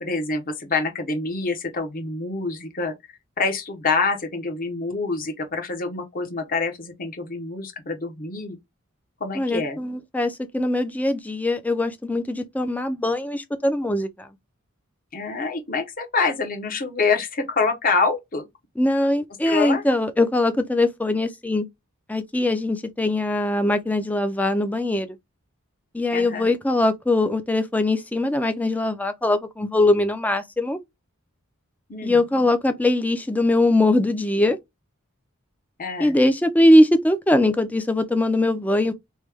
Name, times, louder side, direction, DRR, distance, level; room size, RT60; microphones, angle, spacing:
voice 1, 0.0-2.9 3.4-8.6 9.2-9.8 15.1-18.5 19.4-19.8 26.1-26.5 31.9-32.2 35.8-36.2, left 4 dB, 40° left, 0.9 m, -26 dB
voice 2, 9.4-14.3 18.8-21.7 22.1-25.2 25.9-30.8 32.0-34.6 36.0-38.9, left 1 dB, 5° left, 0.4 m, -21 dB
3.1 x 2.2 x 3.3 m
head